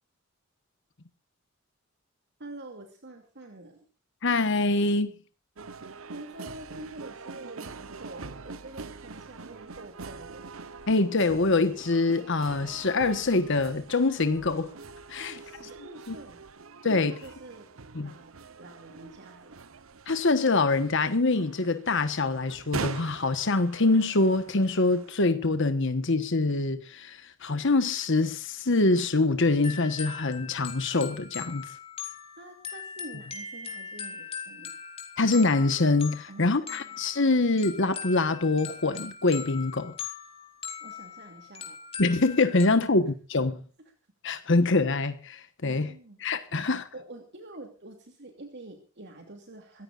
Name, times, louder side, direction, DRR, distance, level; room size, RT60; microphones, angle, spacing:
voice 1, 2.4-3.8 6.0-10.5 15.2-16.4 16.8-17.7 17.9-19.6 32.4-34.8 36.3-37.0 40.8-41.8 42.8-43.0 44.4-44.5 45.6-46.2 46.5-46.6 46.9-49.8, right 2 dB, 55° right, 2.7 m, -46 dB
voice 2, 4.2-5.1 10.9-14.7 15.1-15.3 16.1-16.2 16.8-17.1 17.9-18.1 20.1-31.6 35.2-39.9 42.0-43.6 44.2-45.9 46.2-46.8, left 3 dB, 65° left, 1.3 m, -25 dB
sound 1, 5.6-25.1, right 4 dB, 85° right, 1.0 m, -43 dB
sound 2, 29.6-42.7, left 6 dB, 30° left, 3.4 m, -41 dB
26.0 x 15.0 x 2.5 m
head